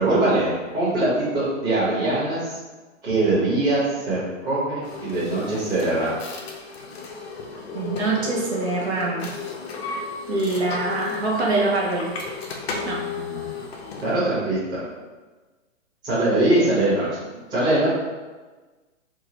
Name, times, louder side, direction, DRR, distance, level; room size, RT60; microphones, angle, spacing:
voice 1, 0.0-2.6 3.0-6.2 12.7-13.6 14.0-14.8 16.0-17.2 17.5-17.9, right 2 dB, 10° right, -11 dB, 0.9 m, -22 dB
sound 1, 4.8-14.2, left 5 dB, 50° left, 0.6 m, -34 dB
voice 2, 7.7-9.3 10.3-12.1 12.9-13.0, right 3 dB, 55° right, -4 dB, 0.7 m, -24 dB
3.6 x 2.1 x 2.8 m, 1.3 s
hypercardioid pair, 145°, 40 cm